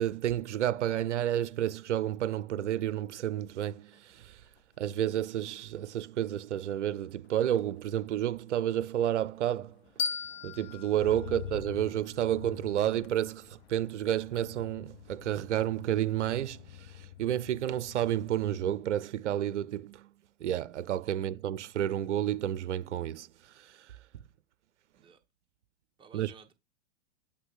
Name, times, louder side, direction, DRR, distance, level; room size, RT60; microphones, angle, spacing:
voice 1, 0.0-4.4 4.8-9.8 10.4-16.6 17.0-20.1 20.4-23.3 23.6-23.7 26.1-26.3, right 11 dB, 80° right, 0.5 m, -30 dB
Motor vehicle (road), 3.8-4.1 4.4-18.9 19.3-19.7, left 12 dB, 60° left, 0.7 m, -49 dB
sound 1, 10.0-12.8, left 6 dB, 20° left, 0.3 m, -38 dB
voice 2, 11.2-11.5 21.1-21.7 25.0-25.2 26.0-26.5, right 6 dB, 15° right, 1.0 m, -57 dB
7.8 x 3.4 x 4.8 m
hypercardioid pair, 115°, 35 cm